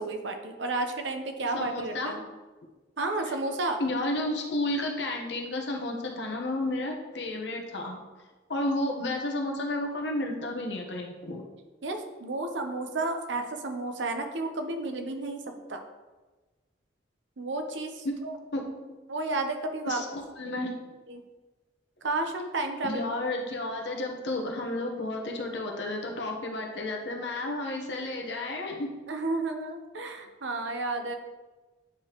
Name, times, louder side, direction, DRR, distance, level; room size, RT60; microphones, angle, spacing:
voice 1, 0.0-2.2 3.0-3.8 11.8-15.8 17.4-18.4 19.1-20.0 21.1-21.2 22.0-23.0 29.1-31.2, right 2 dB, 80° right, 5 dB, 0.8 m, -32 dB
voice 2, 1.5-2.2 3.8-8.0 8.5-11.4 18.5-19.0 19.9-20.7 22.8-28.9, left 2 dB, 70° left, 1 dB, 1.1 m, -32 dB
9.0 x 5.1 x 3.0 m, 1.2 s
head